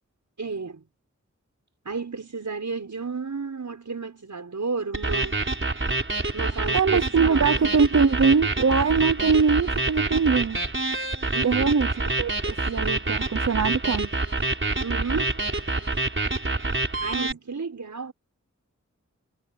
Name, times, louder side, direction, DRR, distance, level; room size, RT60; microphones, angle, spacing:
voice 1, 0.4-0.8 1.8-5.4 6.3-7.6 11.3-11.7 14.8-15.3 17.0-18.1, right 4 dB, 80° right, 6.3 m, -32 dB
sound 1, 4.9-17.3, right 2 dB, 45° right, 4.3 m, -27 dB
voice 2, 6.7-10.6 11.4-11.9 12.2-14.1, right 5 dB, 60° right, 0.9 m, -22 dB
wide cardioid pair, 80°, 29 cm